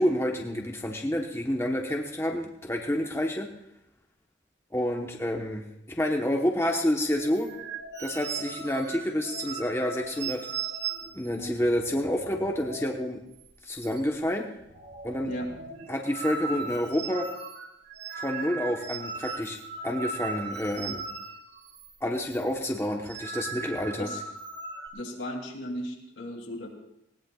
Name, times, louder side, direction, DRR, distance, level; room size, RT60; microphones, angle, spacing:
voice 1, 0.0-3.5 4.7-7.5 8.0-10.5 11.1-13.2 13.6-14.5 15.0-15.3 15.9-17.3 18.2-19.6 19.8-21.0 22.0-24.1, left 1 dB, 15° left, 1 dB, 1.0 m, -28 dB
sound 1, 7.1-13.1 13.3-13.5 13.8-14.3 14.6-21.9 22.2-22.4 22.9-24.9, right 4 dB, 60° right, 1.7 m, -38 dB
voice 2, 24.9-26.7, equal, 80° left, 1 dB, 2.9 m, -35 dB
19.5 x 18.0 x 2.4 m, 0.83 s
head